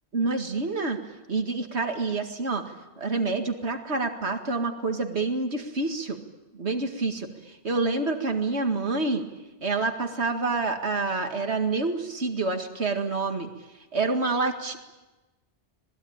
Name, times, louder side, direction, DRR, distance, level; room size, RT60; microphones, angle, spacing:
voice 1, 0.1-1.0 1.3-2.7 3.0-6.2 6.5-7.3 7.6-9.3 9.6-13.5 13.9-14.8, right 3 dB, 90° right, 5 dB, 2.3 m, -27 dB
26.0 x 20.0 x 8.8 m, 1.1 s
omnidirectional pair, 1.1 m